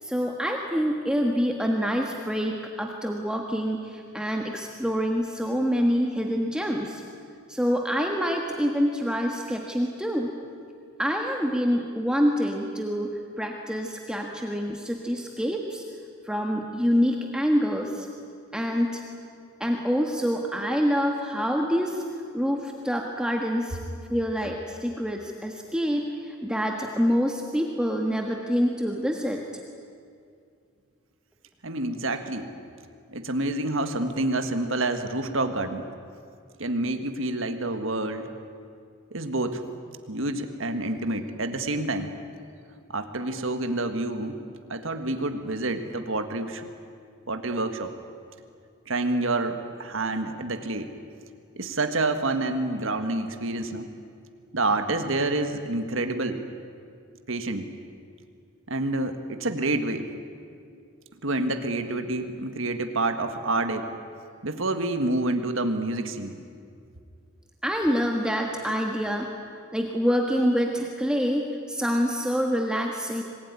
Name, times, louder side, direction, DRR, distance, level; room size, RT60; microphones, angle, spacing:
voice 1, 0.0-7.0 7.5-10.3 11.0-15.8 16.2-18.1 18.5-19.0 19.6-22.0 22.3-23.8 24.1-29.4 67.6-73.2, equal, 5° right, 1 dB, 1.5 m, -26 dB
voice 2, 31.6-32.5 33.1-35.8 36.6-38.3 39.1-39.6 40.1-42.1 42.9-44.4 44.7-46.6 47.3-47.9 48.9-50.9 51.6-53.9 54.5-56.5 57.3-57.7 58.7-60.1 61.2-63.9 64.4-66.4, right 2 dB, 70° right, 7 dB, 1.7 m, -28 dB
26.5 x 20.5 x 9.8 m, 2.4 s
head